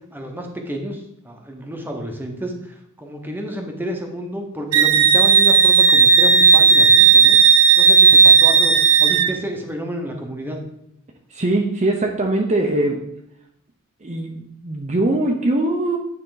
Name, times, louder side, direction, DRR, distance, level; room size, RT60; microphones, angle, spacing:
voice 1, 0.1-2.5 3.0-7.4 7.8-8.7 9.0-10.6, equal, 10° right, 2 dB, 0.9 m, -30 dB
Wind instrument woodwind instrument, 4.7-9.3, right 6 dB, 80° right, 0.6 m, -12 dB
voice 2, 11.3-13.0 14.0-16.0, right 2 dB, 35° right, 1 dB, 0.7 m, -21 dB
9.2 x 3.9 x 3.8 m, 0.77 s
head